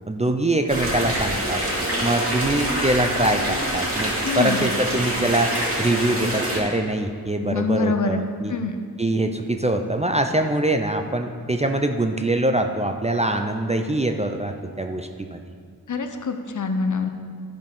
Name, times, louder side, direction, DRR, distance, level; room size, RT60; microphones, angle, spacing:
voice 1, 0.1-1.6 2.0-5.5 5.8-8.5 9.0-15.4, right 1 dB, 20° right, 5 dB, 0.5 m, -23 dB
sound 1, 0.7-6.6, right 1 dB, 35° right, 2.5 m, -25 dB
voice 2, 4.2-4.7 7.4-8.2 8.5-8.8 15.9-17.1, left 4 dB, 50° left, 6 dB, 0.8 m, -25 dB
11.5 x 5.2 x 5.4 m, 2.1 s
wide cardioid pair, 80°, 38 cm